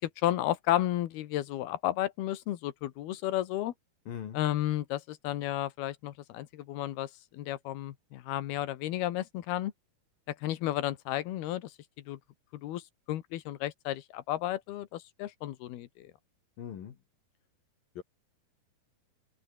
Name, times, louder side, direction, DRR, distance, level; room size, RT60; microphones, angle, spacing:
voice 1, 0.0-3.7 4.3-9.7 10.3-11.7 12.1-12.2 12.5-16.1, left 14 dB, 90° left, 3.3 m, -33 dB
voice 2, 4.1-4.4 16.6-17.0 18.0-18.1, left 9 dB, 65° left, 3.9 m, -40 dB
omnidirectional pair, 4.4 m